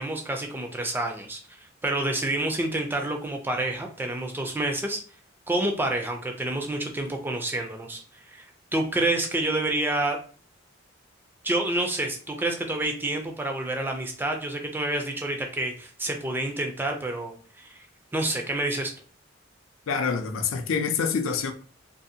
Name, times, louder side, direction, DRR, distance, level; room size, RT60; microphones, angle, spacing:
voice 1, 0.0-1.4 1.8-5.0 5.5-8.5 8.7-10.2 11.4-17.8 18.1-18.9, right 1 dB, 10° right, 0.3 m, -28 dB
voice 2, 19.9-21.5, left 5 dB, 80° left, 0.4 m, -26 dB
2.6 x 2.4 x 2.6 m
head